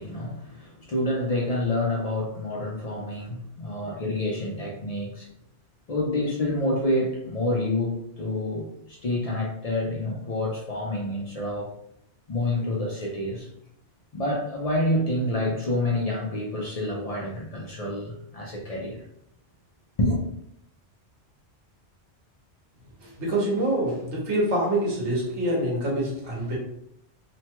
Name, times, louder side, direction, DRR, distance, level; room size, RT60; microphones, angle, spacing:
voice 1, 0.0-5.3 5.9-11.7 12.3-13.5 14.1-19.0 20.0-20.2, left 1 dB, 50° left, -2 dB, 0.4 m, -28 dB
voice 2, 23.0-26.5, right 1 dB, 80° right, -4 dB, 1.3 m, -26 dB
2.9 x 2.2 x 2.9 m, 0.73 s
omnidirectional pair, 1.2 m